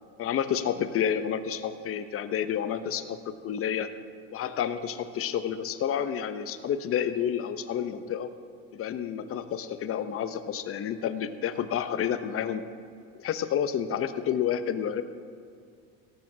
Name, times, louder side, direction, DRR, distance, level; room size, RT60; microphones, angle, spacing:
voice 1, 0.2-3.9 4.3-8.3 8.7-12.6 13.1-15.0, left 9 dB, 35° left, 11 dB, 0.8 m, -30 dB
17.5 x 12.5 x 2.8 m, 2.3 s
supercardioid pair, 110°, 37 cm